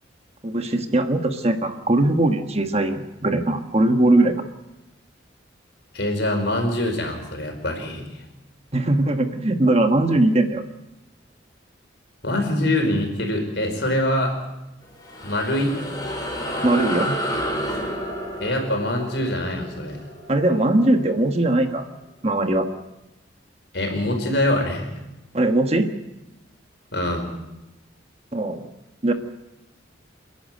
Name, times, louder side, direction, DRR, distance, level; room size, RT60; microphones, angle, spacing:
voice 1, 0.4-4.5 8.7-10.6 16.6-17.2 20.3-21.9 22.2-22.7 25.3-25.9 28.3-28.7 29.0-29.1, right 2 dB, 35° right, 7 dB, 1.4 m, -20 dB
voice 2, 5.9-8.1 12.2-14.4 15.2-15.8 18.4-20.0 23.7-24.9 26.9-27.3, left 1 dB, 65° left, 4 dB, 4.9 m, -24 dB
sound 1, 14.8-21.6, equal, 20° left, 4.2 m, -31 dB
29.0 x 11.0 x 9.2 m, 0.96 s
head